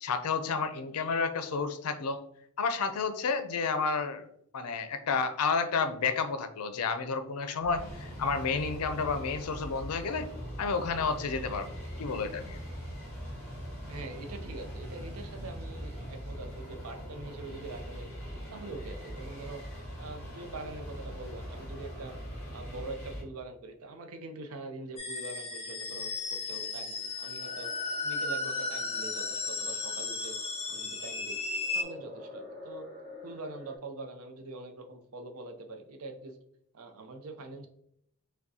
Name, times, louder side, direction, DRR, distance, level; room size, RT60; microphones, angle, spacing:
voice 1, 0.0-2.2 2.6-4.3 4.5-10.3 10.6-12.6, left 5 dB, 85° left, 9 dB, 0.5 m, -31 dB
sound 1, 7.6-23.2, equal, 10° left, 1.3 m, -41 dB
voice 2, 13.9-18.1 18.5-19.6 20.0-22.2 22.5-27.7 28.0-30.4 30.7-31.4 31.7-32.9 33.2-36.4 36.7-37.7, right 2 dB, 75° right, 5 dB, 0.6 m, -44 dB
sound 2, 25.0-31.8, left 3 dB, 25° left, 0.5 m, -35 dB
sound 3, 27.4-33.8, left 1 dB, 40° right, 1.3 m, -49 dB
5.9 x 2.2 x 2.7 m, 0.72 s
head